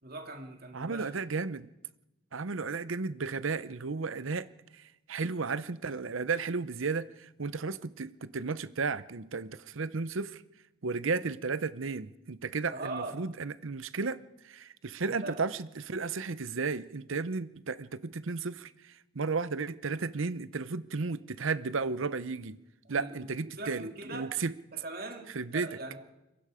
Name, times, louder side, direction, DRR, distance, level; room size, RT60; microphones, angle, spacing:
voice 1, 0.0-1.1 12.7-13.2 15.2-15.4 22.8-24.3 24.7-26.0, right 2 dB, 45° right, 2.4 m, -41 dB
voice 2, 0.7-1.7 2.3-4.5 4.7-4.8 5.1-10.4 10.8-22.6 22.9-24.5 25.3-25.7, right 4 dB, 70° right, 0.8 m, -34 dB
26.0 x 23.0 x 5.0 m
head